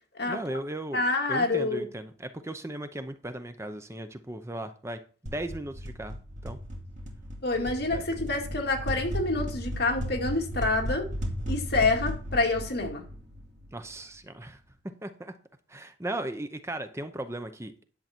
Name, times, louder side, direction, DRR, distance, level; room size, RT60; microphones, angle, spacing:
voice 1, 0.3-6.2 6.4-6.6 7.9-8.1 13.7-14.6 15.0-15.3 15.7-17.8, right 1 dB, 15° right, 0.7 m, -37 dB
voice 2, 0.9-1.9 7.4-11.1 11.5-13.0, left 3 dB, 60° left, 2.4 m, -27 dB
sound 1, 5.3-13.9, equal, 40° right, 2.3 m, -35 dB
10.5 x 7.5 x 4.4 m
head